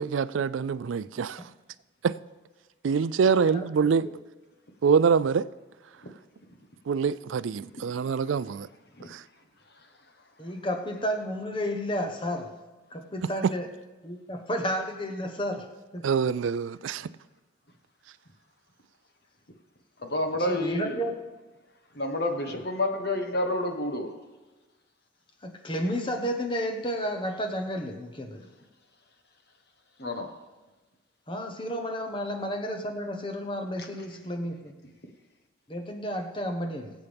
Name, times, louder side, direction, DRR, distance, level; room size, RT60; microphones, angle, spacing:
voice 1, 0.0-1.4 2.0-2.2 2.8-4.1 4.8-5.5 6.9-8.7 9.1-9.2 13.4-13.5 16.0-17.1, right 6 dB, 80° right, 0.4 m, -25 dB
voice 2, 10.4-12.5 12.9-13.7 14.0-16.1 20.5-21.1 25.4-28.5 31.3-34.7 35.7-36.9, equal, 25° left, 1.1 m, -32 dB
voice 3, 20.0-21.1 21.9-24.1 30.0-30.3 33.8-33.9, left 1 dB, 55° left, 1.4 m, -29 dB
22.5 x 8.2 x 3.5 m
head